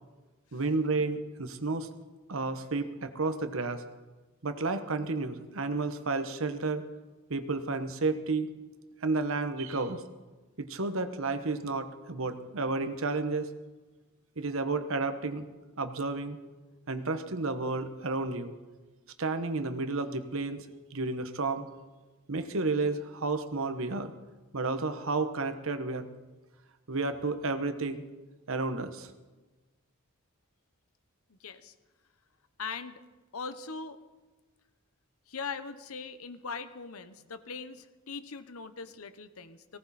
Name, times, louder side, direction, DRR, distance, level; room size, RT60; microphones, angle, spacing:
voice 1, 0.5-1.9 2.3-3.8 4.4-6.8 7.3-8.5 9.0-10.0 10.6-13.5 14.4-15.5 15.8-16.4 16.9-18.5 19.2-21.7 22.3-24.1 24.5-26.1 26.9-28.0 28.5-29.1, right 3 dB, 65° right, 9 dB, 1.1 m, -31 dB
voice 2, 31.3-31.7 32.6-33.0 33.3-34.0 35.3-39.8, left 5 dB, 80° left, 11 dB, 1.0 m, -41 dB
18.5 x 17.5 x 4.3 m, 1.2 s
head